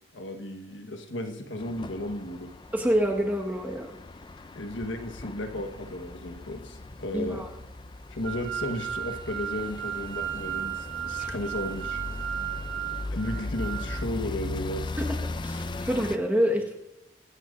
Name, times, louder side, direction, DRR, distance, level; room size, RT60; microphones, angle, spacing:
voice 1, 0.1-2.6 4.5-7.5 8.1-12.6 13.1-14.9, left 1 dB, 85° left, 6 dB, 1.4 m, -34 dB
sound 1, 1.6-16.2, left 2 dB, 25° left, 0.4 m, -38 dB
voice 2, 2.7-3.9 7.1-7.5 11.2-11.3 15.0-15.1 15.4-16.8, equal, 10° right, 0 dB, 1.5 m, -26 dB
sound 2, 8.2-14.1, right 11 dB, 70° right, 1.0 m, -35 dB
23.5 x 10.0 x 2.6 m, 0.96 s
head